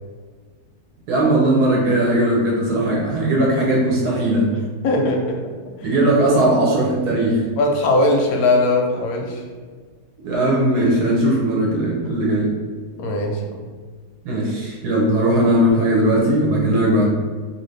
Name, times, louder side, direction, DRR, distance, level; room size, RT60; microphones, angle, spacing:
voice 1, 1.1-4.5 5.8-7.4 10.2-12.5 14.2-17.0, right 1 dB, 70° right, -4 dB, 1.2 m, -18 dB
voice 2, 4.8-5.4 5.8-5.9 7.6-9.4 13.0-13.6, left 2 dB, 70° left, 1 dB, 0.9 m, -19 dB
2.8 x 2.8 x 3.1 m, 1.5 s
omnidirectional pair, 1.8 m